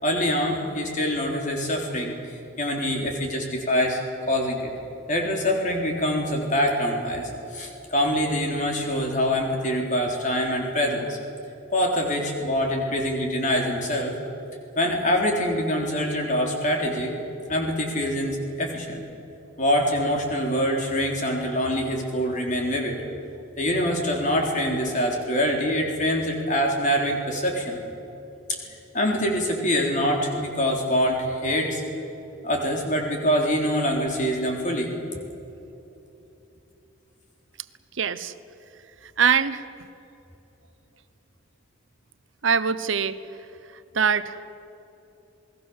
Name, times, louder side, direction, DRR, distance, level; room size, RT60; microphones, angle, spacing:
voice 1, 0.0-4.0 4.3-4.7 5.1-11.2 11.7-14.2 14.8-17.1 17.5-19.0 19.6-23.0 23.6-27.8 28.9-31.8 32.4-34.9, equal, 35° left, 1 dB, 3.8 m, -25 dB
voice 2, 38.0-38.3 39.2-39.7 42.4-43.2 43.9-44.5, right 6 dB, 70° right, 13 dB, 0.9 m, -23 dB
28.0 x 20.5 x 7.2 m, 3.0 s
head